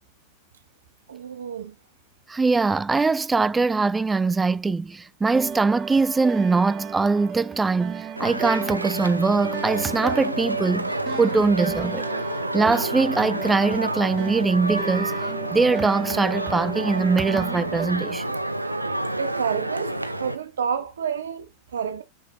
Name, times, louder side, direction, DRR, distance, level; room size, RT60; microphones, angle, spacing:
voice 1, 1.1-1.7 19.2-22.0, right 7 dB, 65° right, 1.6 m, -29 dB
voice 2, 2.3-12.0 12.5-15.1 15.5-18.2, right 4 dB, 10° right, 0.5 m, -22 dB
sound 1, 5.3-17.9, right 6 dB, 30° right, 1.2 m, -35 dB
sound 2, 8.2-20.4, right 1 dB, 85° right, 0.9 m, -29 dB
7.3 x 7.1 x 2.6 m
figure-of-eight pair, 90°, 0 cm